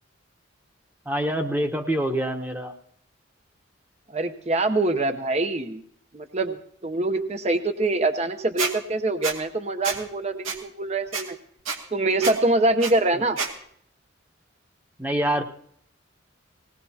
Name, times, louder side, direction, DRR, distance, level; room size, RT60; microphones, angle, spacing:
voice 1, 1.1-2.7 15.0-15.4, right 1 dB, 10° right, 4 dB, 1.0 m, -25 dB
voice 2, 4.1-5.8 6.1-11.4 11.9-13.4, right 2 dB, 30° right, 8 dB, 0.8 m, -24 dB
Squeak, 8.6-8.7 9.2-9.3 9.8-10.0 10.4-10.6 11.1-11.2 11.6-11.8 12.2-12.3 12.8-12.9 13.4-13.5, right 4 dB, 80° right, 2.3 m, -27 dB
20.0 x 18.0 x 2.8 m, 0.66 s
head